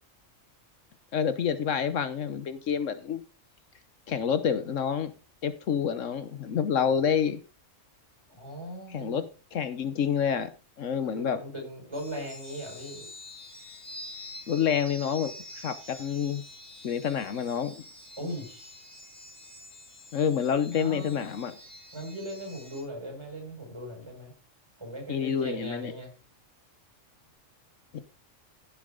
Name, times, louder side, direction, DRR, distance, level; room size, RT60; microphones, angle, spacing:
voice 1, 1.1-3.2 4.1-5.1 5.4-7.4 8.9-9.2 9.5-10.5 10.8-11.4 14.5-16.4 16.8-17.7 20.1-21.5 25.1-25.9 27.9-28.0, left 7 dB, 75° left, 1.2 m, -28 dB
voice 2, 8.3-9.2 11.1-13.1 18.2-18.8 20.8-21.2 21.9-24.3 24.8-26.1, equal, 20° right, 6.0 m, -39 dB
sound 1, 11.9-22.8, left 1 dB, 65° right, 7.2 m, -47 dB
15.5 x 7.1 x 3.8 m
omnidirectional pair, 1.3 m